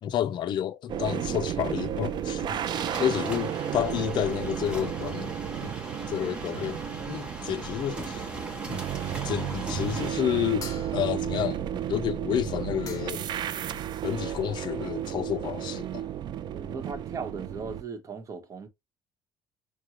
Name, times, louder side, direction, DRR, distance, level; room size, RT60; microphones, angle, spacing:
voice 1, 0.0-2.6 3.0-5.3 5.6-5.8 6.1-6.8 7.1-8.3 8.7-8.8 9.2-11.6 11.9-13.3 14.0-16.1, left 10 dB, 55° left, 0.5 m, -30 dB
sound 1, 0.9-17.8, right 10 dB, 55° right, 0.5 m, -33 dB
sound 2, 1.9-10.1, right 1 dB, 10° right, 1.0 m, -40 dB
sound 3, 10.6-11.4 12.5-12.6 12.9-13.4, left 6 dB, 40° left, 1.1 m, -44 dB
voice 2, 16.5-18.7, right 5 dB, 35° right, 1.0 m, -38 dB
6.2 x 2.2 x 2.8 m
cardioid pair, 120°, 9 cm